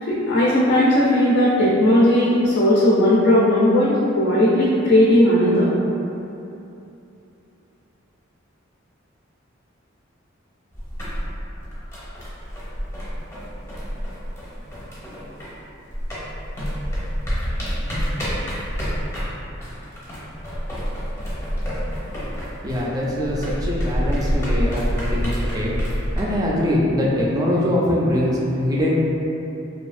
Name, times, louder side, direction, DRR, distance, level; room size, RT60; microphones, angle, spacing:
voice 1, 0.0-5.7, left 1 dB, 60° left, -6 dB, 0.4 m, -17 dB
sound 1, 10.7-15.6 15.9-26.2, equal, 15° left, 0.6 m, -27 dB
voice 2, 22.6-25.7 26.2-28.9, left 1 dB, 20° right, -5 dB, 0.3 m, -22 dB
2.7 x 2.3 x 2.4 m, 2.8 s
head